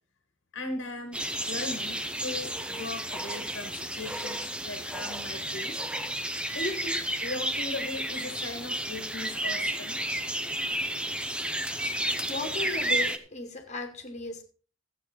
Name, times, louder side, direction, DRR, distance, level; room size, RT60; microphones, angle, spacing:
voice 1, 0.5-6.1 6.5-10.0, left 2 dB, 65° left, 6 dB, 1.5 m, -38 dB
sound 1, 1.1-13.2, right 1 dB, 5° right, 0.8 m, -32 dB
voice 2, 12.3-14.4, left 2 dB, 35° left, 5 dB, 2.1 m, -36 dB
14.0 x 8.6 x 4.4 m, 0.39 s
head